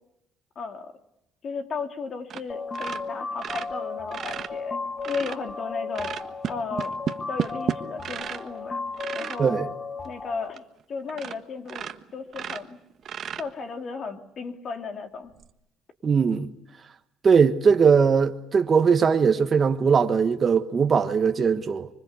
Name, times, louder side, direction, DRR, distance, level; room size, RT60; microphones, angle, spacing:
voice 1, 0.5-0.9 1.4-4.8 5.0-6.2 6.5-7.0 7.3-8.8 9.1-9.6 10.0-10.6 10.9-12.8 13.4-15.3, left 4 dB, 45° left, 3.1 m, -35 dB
sound 1, 2.3-2.5 2.7-5.4 5.9-8.5 8.9-9.4 10.0-10.1 10.5-10.6 11.1-11.4 11.7-13.8 15.3-15.4, right 8 dB, 55° right, 1.4 m, -33 dB
sound 2, 2.5-10.5, left 4 dB, 30° left, 1.5 m, -35 dB
voice 2, 16.0-16.5 17.2-21.9, right 6 dB, 35° right, 1.4 m, -20 dB
25.5 x 24.0 x 8.3 m
cardioid pair, 100°, 0 cm